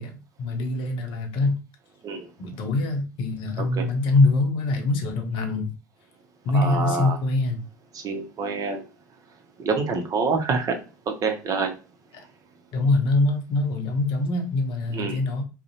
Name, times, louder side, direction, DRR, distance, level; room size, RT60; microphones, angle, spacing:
voice 1, 0.0-1.6 2.4-5.7 6.4-7.6 12.7-15.4, left 2 dB, 55° left, 5 dB, 0.7 m, -24 dB
voice 2, 6.5-7.2 7.9-8.8 9.6-10.8 11.1-11.7 14.9-15.2, right 4 dB, 35° right, 5 dB, 0.6 m, -26 dB
2.5 x 2.0 x 2.7 m, 0.32 s
hypercardioid pair, 75°, 10 cm